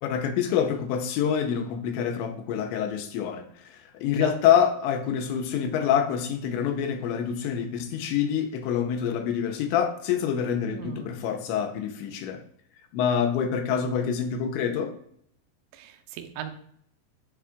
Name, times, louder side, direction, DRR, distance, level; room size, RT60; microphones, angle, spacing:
voice 1, 0.0-12.4 12.9-14.9, left 8 dB, 85° left, 6 dB, 3.0 m, -26 dB
voice 2, 10.6-11.1 15.7-16.5, right 10 dB, 90° right, 7 dB, 3.3 m, -38 dB
14.5 x 5.1 x 2.4 m, 0.66 s
omnidirectional pair, 5.4 m